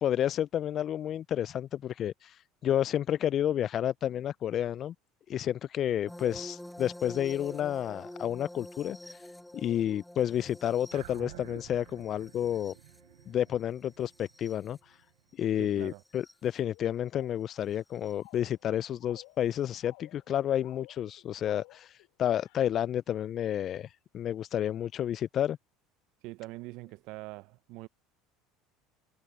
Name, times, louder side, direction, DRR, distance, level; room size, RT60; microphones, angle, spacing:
voice 1, 0.0-4.9 5.3-9.2 9.5-12.7 13.3-14.8 15.4-23.9 24.1-25.6, left 10 dB, 45° left, 0.3 m, -30 dB
sound 1, 6.1-14.8 16.1-16.3 18.0-18.1, left 1 dB, 5° left, 1.2 m, -47 dB
sound 2, 10.9-15.5, right 16 dB, 80° right, 3.3 m, -51 dB
voice 2, 15.6-16.0 26.2-27.9, right 21 dB, 65° right, 0.7 m, -43 dB
sound 3, 16.1-22.1 22.3-22.6, left 29 dB, 70° left, 3.1 m, -57 dB
hypercardioid pair, 75°, 0 cm